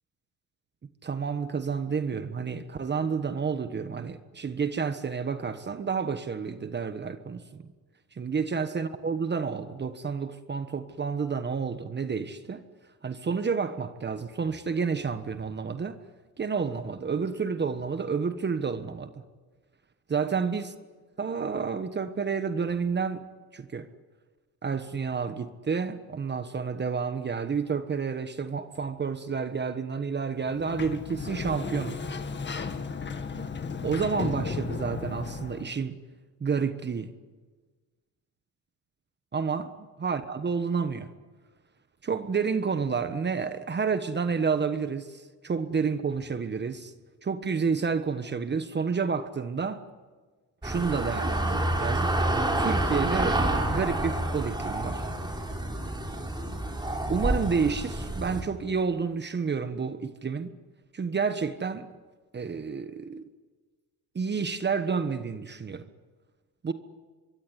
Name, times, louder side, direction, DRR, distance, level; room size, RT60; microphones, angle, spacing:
voice 1, 1.0-7.7 8.1-12.6 13.0-16.0 16.4-19.1 20.1-20.7 21.2-23.9 24.6-32.0 33.8-36.0 36.4-37.1 39.3-39.7 40.0-41.1 42.0-46.9 47.2-49.8 50.6-52.2 52.5-53.4 53.7-55.1 57.1-60.5 60.9-61.9 62.3-63.2 64.1-65.9 66.6-66.7, right 5 dB, 25° right, 1.3 m, -30 dB
Sliding door, 30.4-35.7, left 5 dB, 25° left, 1.9 m, -35 dB
sound 1, 50.6-58.4, right 1 dB, 10° right, 4.6 m, -28 dB
25.0 x 23.0 x 9.9 m
cardioid pair, 110°, 40 cm